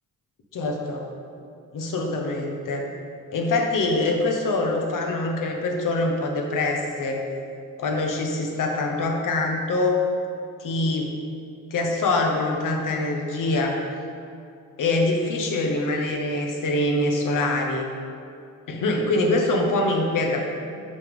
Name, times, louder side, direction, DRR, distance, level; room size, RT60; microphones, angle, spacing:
voice 1, 0.5-1.0 1.7-2.9 3.3-7.2 7.8-10.0 10.6-11.1 11.7-13.8 14.8-17.9 18.7-20.4, left 2 dB, 70° left, 2 dB, 1.2 m, -24 dB
6.6 x 5.3 x 5.4 m, 2.4 s
cardioid pair, 85°, 33 cm